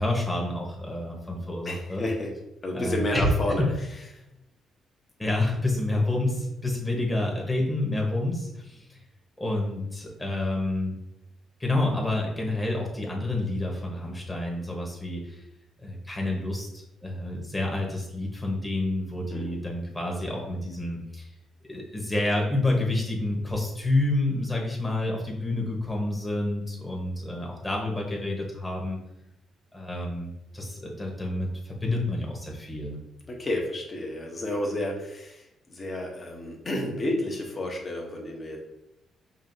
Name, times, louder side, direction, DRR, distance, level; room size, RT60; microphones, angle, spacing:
voice 1, 0.0-2.0 2.7-3.3 3.6-3.7 5.2-9.0 9.4-11.0 11.6-15.4 15.8-21.3 21.6-29.0 29.7-33.0, left 2 dB, 15° left, -1 dB, 1.2 m, -29 dB
voice 2, 1.6-2.3 2.6-3.6 4.1-4.2 19.3-19.5 33.3-38.6, left 1 dB, 35° left, 0 dB, 1.0 m, -31 dB
5.5 x 2.4 x 2.7 m, 0.88 s
cardioid pair, 90°, 0 cm